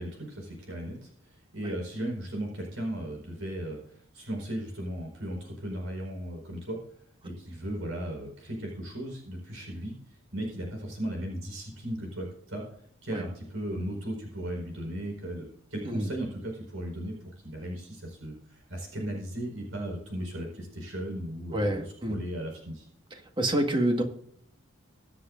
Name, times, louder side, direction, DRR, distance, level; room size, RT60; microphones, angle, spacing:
voice 1, 0.0-6.8 7.2-12.6 13.0-17.2 17.4-22.9, right 1 dB, 75° right, 0 dB, 4.7 m, -36 dB
voice 2, 21.5-22.2 23.4-24.0, right 1 dB, 25° right, 3 dB, 1.7 m, -27 dB
23.0 x 7.8 x 2.6 m, 0.66 s
head